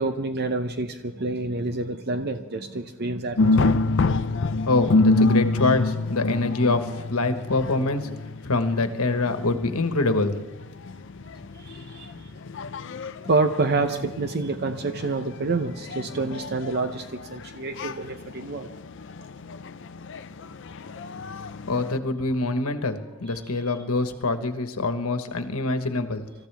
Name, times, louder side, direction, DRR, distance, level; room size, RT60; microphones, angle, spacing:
voice 1, 0.0-3.9 11.5-12.3 13.2-18.7 23.3-23.7, right 3 dB, 50° right, 7 dB, 0.7 m, -28 dB
sound 1, 3.4-22.0, left 3 dB, 55° left, 0.5 m, -28 dB
voice 2, 4.6-8.1 8.4-10.4 21.1-21.2 21.7-26.3, left 2 dB, 80° left, 8 dB, 1.3 m, -25 dB
26.0 x 14.5 x 3.5 m, 1.0 s
head